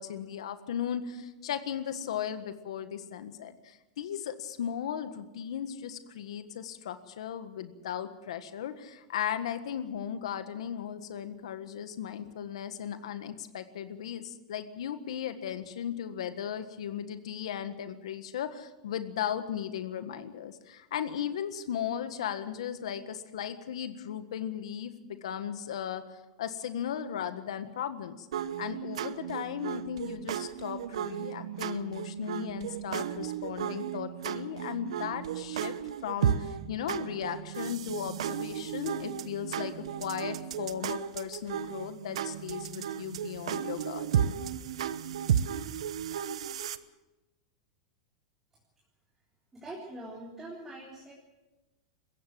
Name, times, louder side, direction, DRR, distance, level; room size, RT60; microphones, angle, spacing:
voice 1, 0.0-28.3 28.6-35.7 36.0-44.3, left 9 dB, 85° left, 10 dB, 1.5 m, -36 dB
sound 1, 28.3-46.8, right 9 dB, 90° right, 1.0 m, -34 dB
voice 2, 49.5-51.1, right 1 dB, 10° right, -3 dB, 3.9 m, -43 dB
22.0 x 16.5 x 7.7 m, 1.1 s
supercardioid pair, 145°, 3 cm